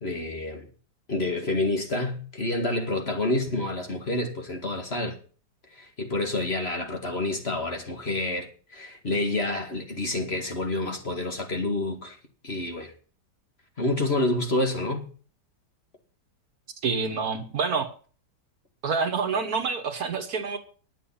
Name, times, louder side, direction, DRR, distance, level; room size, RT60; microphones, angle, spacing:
voice 1, 0.0-0.7 1.1-5.2 5.7-12.2 12.4-12.9 13.8-15.1, left 2 dB, 35° left, 2.3 m, -28 dB
voice 2, 16.8-17.9 18.8-20.6, right 5 dB, 60° right, 1.8 m, -27 dB
10.0 x 7.6 x 8.6 m
omnidirectional pair, 1.8 m